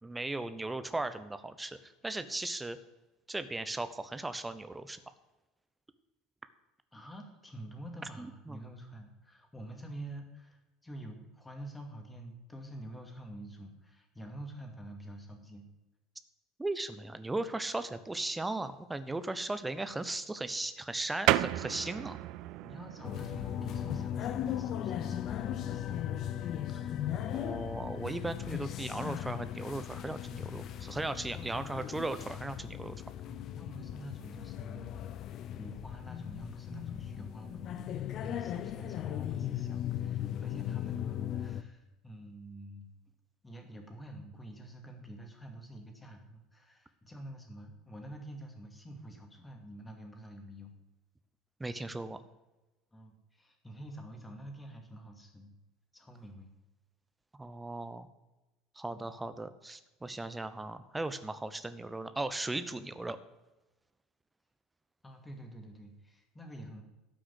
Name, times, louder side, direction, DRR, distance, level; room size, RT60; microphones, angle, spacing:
voice 1, 0.0-2.8 3.3-5.0 8.2-8.6 16.6-22.2 27.3-33.0 51.6-52.2 57.4-58.1 58.8-63.2, right 2 dB, 10° right, 11 dB, 0.9 m, -37 dB
voice 2, 6.9-15.7 22.6-26.1 28.4-28.5 30.6-30.7 31.3-31.7 32.6-32.7 33.2-34.9 35.5-42.9 43.4-50.7 52.9-55.5 55.9-56.5 58.9-59.1 65.0-66.8, right 1 dB, 10° left, 3 dB, 2.4 m, -48 dB
sound 1, 21.3-31.4, right 16 dB, 50° right, 0.4 m, -38 dB
sound 2, 23.0-41.6, left 11 dB, 45° left, 0.6 m, -37 dB
12.5 x 6.1 x 8.2 m, 1.1 s
figure-of-eight pair, 65°, 0 cm